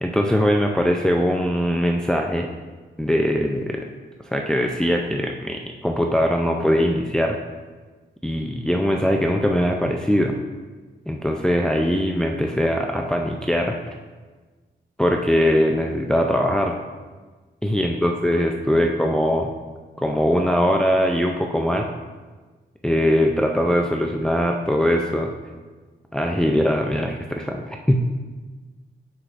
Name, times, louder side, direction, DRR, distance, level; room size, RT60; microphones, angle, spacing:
voice 1, 0.0-2.5 3.0-3.7 4.2-7.4 8.2-10.3 11.1-13.9 15.0-16.8 17.6-19.5 20.0-21.9 22.8-25.3 26.1-28.0, equal, 5° left, 2 dB, 0.4 m, -21 dB
9.9 x 4.8 x 2.5 m, 1.3 s
cardioid pair, 80°, 20 cm